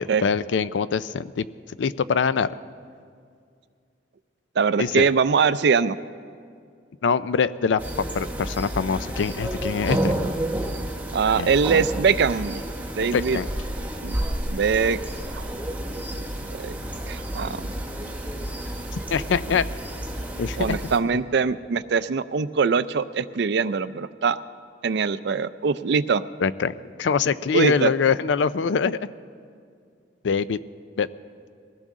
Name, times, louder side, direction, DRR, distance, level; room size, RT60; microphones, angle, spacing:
voice 1, 0.0-1.5 1.8-2.6 4.8-5.1 7.0-10.1 11.4-11.5 13.1-13.5 19.1-19.7 20.4-20.8 26.4-29.0 30.2-30.6 31.0-31.1, left 5 dB, 80° left, 16 dB, 0.4 m, -24 dB
voice 2, 4.6-6.0 11.1-12.6 13.0-13.4 14.0-14.2 14.5-15.0 15.3-15.4 16.5-16.8 17.1-17.7 18.0-18.1 20.6-24.4 24.8-26.2 27.5-27.9, right 5 dB, 65° right, 14 dB, 0.4 m, -22 dB
sound 1, 7.8-21.0, right 1 dB, 10° right, 1.0 m, -30 dB
21.5 x 16.0 x 3.7 m, 2.3 s
head